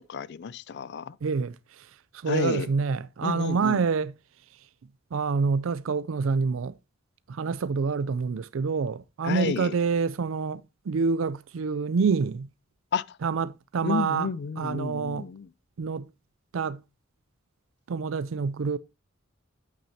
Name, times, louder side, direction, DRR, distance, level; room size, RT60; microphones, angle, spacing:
voice 1, 0.0-1.2 2.3-2.7 3.2-3.8 9.2-9.7 12.9-13.0 13.8-15.5, left 5 dB, 55° left, 0.4 m, -31 dB
voice 2, 1.2-1.9 2.1-4.1 5.1-6.7 7.3-12.5 13.2-14.3 14.6-15.3 15.8-16.0 16.5-16.8 17.9-18.8, right 5 dB, 70° right, 0.4 m, -27 dB
8.8 x 8.5 x 2.7 m
head